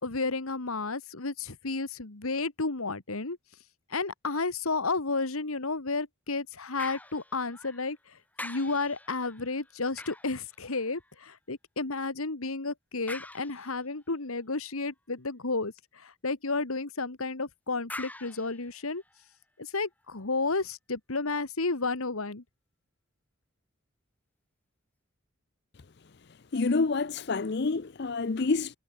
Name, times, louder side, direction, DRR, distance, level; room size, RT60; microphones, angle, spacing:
voice 1, 0.0-3.4 3.9-19.0 19.6-22.4, left 3 dB, 80° left, 1.7 m, -32 dB
sound 1, 6.8-8.0 8.3-11.2 13.1-14.0 17.9-19.4 19.9-20.0, left 2 dB, 5° left, 2.0 m, -45 dB
voice 2, 26.5-28.8, left 3 dB, 50° left, 0.6 m, -28 dB
head